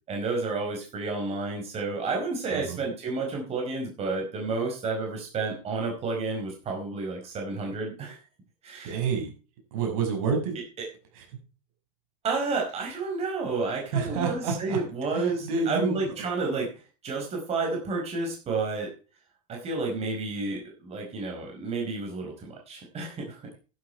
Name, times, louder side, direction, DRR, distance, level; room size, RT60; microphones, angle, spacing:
voice 1, 0.1-8.2 8.6-9.0 12.2-18.9 19.5-23.5, right 3 dB, 35° right, 1 dB, 4.9 m, -31 dB
voice 2, 8.8-9.3 9.7-10.5 11.1-11.3 13.9-14.8 15.1-16.1, right 5 dB, 65° right, 3 dB, 6.3 m, -29 dB
11.0 x 10.5 x 4.6 m, 0.35 s
hypercardioid pair, 105°, 19 cm